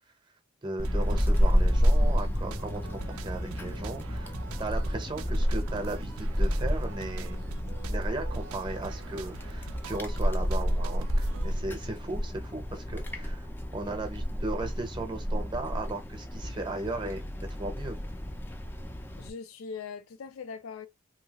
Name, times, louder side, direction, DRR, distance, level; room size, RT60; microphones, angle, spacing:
voice 1, 0.6-7.4 7.9-13.5 13.7-18.0, right 2 dB, 20° right, 0.6 m, -36 dB
Wind, 0.8-19.3, equal, 10° left, 0.3 m, -30 dB
sound 1, 0.8-11.5, right 7 dB, 90° right, 0.3 m, -46 dB
voice 2, 19.2-20.9, left 5 dB, 85° left, 0.4 m, -40 dB
2.8 x 2.3 x 2.9 m
head